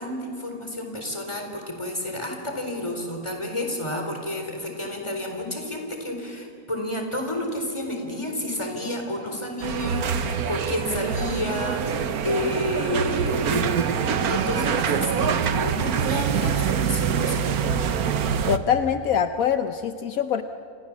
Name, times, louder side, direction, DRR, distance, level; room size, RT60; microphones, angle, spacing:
voice 1, 0.0-17.7, left 1 dB, 20° left, 3 dB, 4.3 m, -30 dB
sound 1, 9.6-18.6, right 7 dB, 85° right, 1.5 m, -25 dB
voice 2, 18.5-20.4, left 8 dB, 75° left, 9 dB, 1.3 m, -24 dB
29.0 x 27.0 x 7.4 m, 2.5 s
omnidirectional pair, 1.5 m